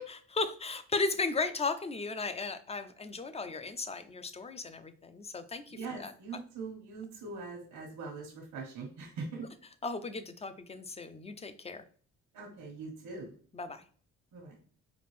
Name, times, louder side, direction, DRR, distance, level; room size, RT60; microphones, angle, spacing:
voice 1, 0.1-6.1 9.8-11.8 13.5-13.8, left 3 dB, 20° left, 10 dB, 0.5 m, -36 dB
voice 2, 5.7-9.4 12.3-13.3 14.3-14.6, right 4 dB, 85° right, -1 dB, 1.3 m, -42 dB
5.1 x 2.5 x 3.3 m, 0.43 s
cardioid pair, 90°, 30 cm